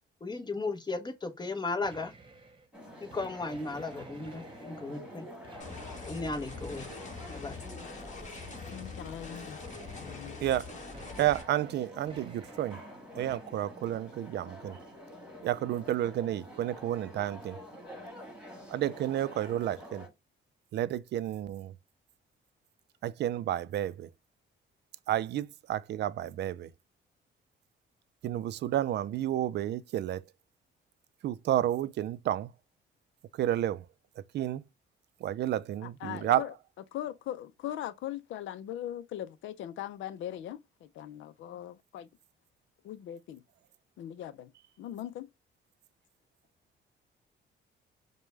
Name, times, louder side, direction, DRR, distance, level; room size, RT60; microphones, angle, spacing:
voice 1, 0.2-2.1 3.0-5.3 6.1-6.9 7.3-7.6, left 3 dB, 20° left, 0.8 m, -35 dB
sound 1, 1.8-2.7 3.1-5.0 5.4-7.8 8.3-9.2 9.6-10.5 10.9-11.8 12.1-12.9 13.2-13.4, right 3 dB, 25° right, 1.0 m, -54 dB
sound 2, 2.7-20.1, equal, 5° right, 1.7 m, -48 dB
sound 3, 5.6-11.4, left 4 dB, 35° left, 1.4 m, -44 dB
voice 2, 8.7-9.6 10.0-10.4 35.8-36.5 36.9-42.1 42.8-43.4 44.0-44.5 44.8-45.3, left 11 dB, 75° left, 0.5 m, -40 dB
voice 3, 10.4-10.7 11.2-12.8 13.1-14.8 15.4-17.6 18.7-20.1 20.7-21.7 23.0-24.1 25.1-26.7 28.2-30.2 31.2-32.5 33.3-33.9 34.3-34.6 35.2-36.4, right 12 dB, 60° right, 0.4 m, -31 dB
5.0 x 2.2 x 3.2 m
cardioid pair, 90°, 20 cm